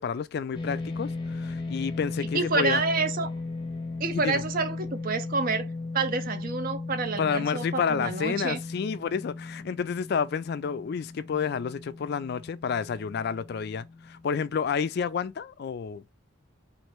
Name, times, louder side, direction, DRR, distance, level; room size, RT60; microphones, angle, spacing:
voice 1, 0.0-2.8 4.2-4.4 7.2-16.0, left 6 dB, 50° left, 0.3 m, -30 dB
sound 1, 0.5-15.0, left 3 dB, 25° left, 0.7 m, -37 dB
voice 2, 2.3-3.3 4.0-5.7 5.9-8.6, right 4 dB, 45° right, 0.6 m, -28 dB
3.1 x 2.5 x 4.4 m
head